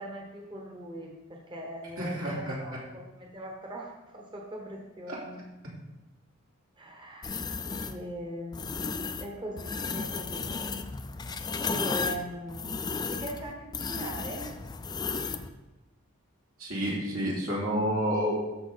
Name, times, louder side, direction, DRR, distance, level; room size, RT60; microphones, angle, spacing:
voice 1, 0.0-5.4 6.8-7.5 7.9-10.5 11.6-14.5, right 1 dB, 25° right, 0 dB, 1.0 m, -40 dB
voice 2, 2.0-2.5 16.6-18.3, equal, 80° right, -5 dB, 3.0 m, -29 dB
sound 1, 7.2-8.0 8.5-9.3 9.6-15.5, left 5 dB, 20° left, 0.4 m, -34 dB
13.0 x 4.9 x 4.0 m, 1.0 s
head